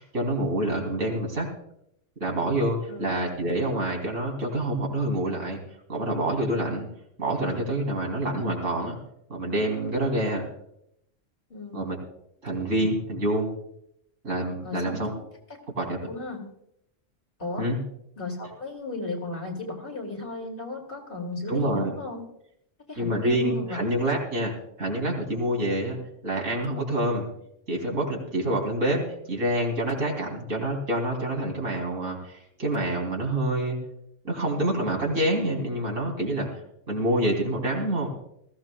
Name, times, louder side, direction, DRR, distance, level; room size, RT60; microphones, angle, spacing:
voice 1, 0.0-1.5 2.2-5.6 5.9-6.9 7.2-9.0 9.3-10.4 11.7-12.0 12.4-13.5 14.2-15.1 15.8-16.0 17.6-17.8 21.5-21.9 23.0-24.5 24.8-26.0 26.2-27.3 27.7-29.0 29.3-33.8 34.2-36.5 36.9-38.1, right 1 dB, 85° right, -1 dB, 3.5 m, -27 dB
voice 2, 11.5-11.9 14.6-15.1 16.1-16.4 17.4-17.7 18.2-22.2 22.9-23.8, left 2 dB, 45° left, 0 dB, 2.8 m, -35 dB
20.0 x 15.0 x 2.3 m, 0.76 s
omnidirectional pair, 1.3 m